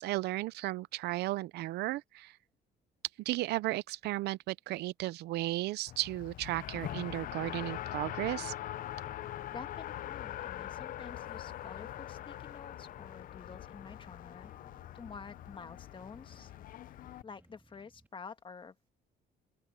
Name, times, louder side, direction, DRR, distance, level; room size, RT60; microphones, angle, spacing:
voice 1, 0.0-2.3 3.3-8.5, right 17 dB, 75° right, 0.6 m, -34 dB
Race car auto racing, 5.9-17.2, left 13 dB, 55° left, 0.6 m, -43 dB
sound 1, 6.9-18.1, right 2 dB, 10° right, 2.4 m, -65 dB
voice 2, 9.5-14.5 14.9-16.5 16.9-18.7, left 5 dB, 30° left, 1.6 m, -49 dB
open air
cardioid pair, 110°, 17 cm